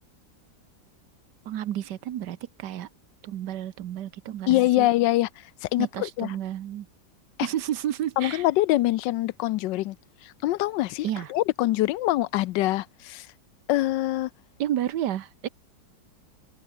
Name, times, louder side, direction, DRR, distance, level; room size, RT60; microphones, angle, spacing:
voice 1, 1.4-2.9 3.2-4.9 5.8-6.9 7.4-8.5 11.0-11.3 14.6-15.5, right 11 dB, 70° right, 1.5 m, -31 dB
voice 2, 4.5-5.3 5.6-6.3 8.2-10.0 10.2-13.3 13.7-14.3, left 16 dB, 80° left, 1.3 m, -24 dB
omnidirectional pair, 1.9 m